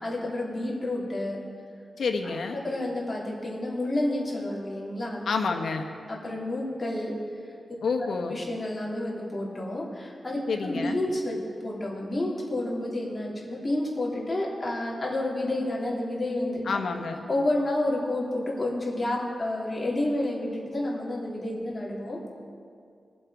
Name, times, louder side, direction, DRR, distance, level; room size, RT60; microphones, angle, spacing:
voice 1, 0.0-1.4 2.2-5.2 6.1-7.1 8.0-11.4 11.6-16.6 17.3-22.3, left 1 dB, 20° left, -5 dB, 3.0 m, -30 dB
voice 2, 2.0-2.6 5.3-5.8 7.8-8.4 10.5-11.0 16.7-17.3, left 4 dB, 70° left, 4 dB, 1.2 m, -29 dB
22.5 x 7.7 x 4.8 m, 2.2 s
wide cardioid pair, 155°, 0 cm